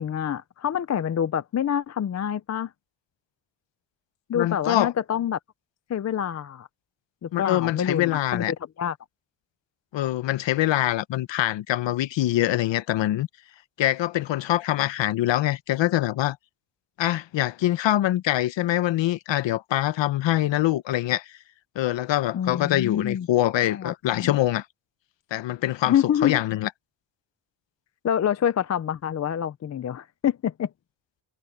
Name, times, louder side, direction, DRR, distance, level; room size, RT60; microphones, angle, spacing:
voice 1, 0.0-2.7 4.3-5.4 5.9-6.7 7.2-9.0 22.3-23.3 23.7-24.3 25.8-26.4 28.0-30.7, left 9 dB, 35° left, 0.5 m, -26 dB
voice 2, 4.3-4.9 7.3-8.5 9.9-13.3 13.8-16.4 17.0-21.4 21.8-24.7 25.3-26.7, left 14 dB, 75° left, 0.8 m, -24 dB
wide cardioid pair, 155°, 45 cm